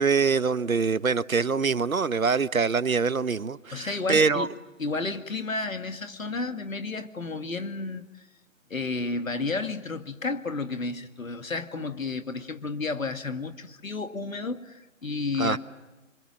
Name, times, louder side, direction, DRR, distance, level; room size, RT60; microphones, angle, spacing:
voice 1, 0.0-4.5 15.4-15.6, right 5 dB, 90° right, 16 dB, 1.2 m, -24 dB
voice 2, 3.7-4.5 4.8-8.3 8.7-15.6, left 3 dB, 75° left, 7 dB, 2.4 m, -32 dB
29.0 x 25.5 x 7.6 m, 1.1 s
figure-of-eight pair, 160°, 40 cm